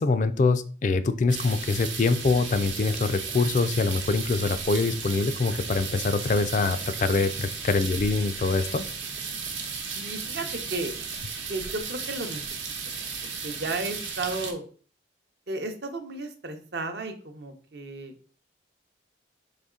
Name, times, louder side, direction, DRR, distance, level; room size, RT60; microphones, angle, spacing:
voice 1, 0.0-8.8, left 3 dB, 40° left, 11 dB, 0.3 m, -24 dB
sound 1, 1.3-14.5, right 5 dB, 85° right, 1.0 m, -35 dB
voice 2, 10.0-11.0 11.5-12.4 13.2-14.6 15.5-18.1, right 2 dB, 60° right, 6 dB, 0.7 m, -33 dB
4.1 x 3.1 x 3.6 m, 0.41 s
head